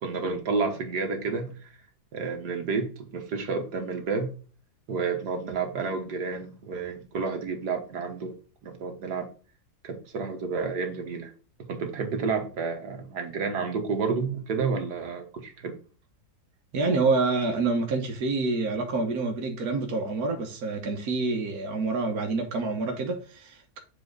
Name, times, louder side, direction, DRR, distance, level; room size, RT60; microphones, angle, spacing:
voice 1, 0.0-1.7 2.1-4.3 4.9-8.3 8.6-9.3 9.8-11.3 11.7-15.7, right 4 dB, 85° right, 1.9 m, -30 dB
voice 2, 16.7-23.8, right 3 dB, 65° right, 1.7 m, -27 dB
7.3 x 4.5 x 3.9 m
omnidirectional pair, 1.7 m